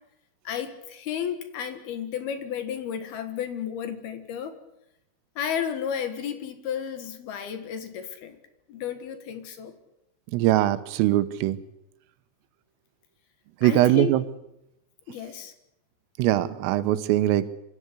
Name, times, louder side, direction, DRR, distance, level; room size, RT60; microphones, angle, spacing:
voice 1, 0.4-4.6 5.4-8.4 8.7-9.7 13.6-14.1 15.1-15.5, left 8 dB, 60° left, 9 dB, 2.9 m, -32 dB
voice 2, 10.3-11.6 13.6-14.2 16.2-17.5, right 14 dB, 80° right, 12 dB, 3.6 m, -21 dB
25.0 x 14.0 x 9.8 m, 0.87 s
omnidirectional pair, 6.0 m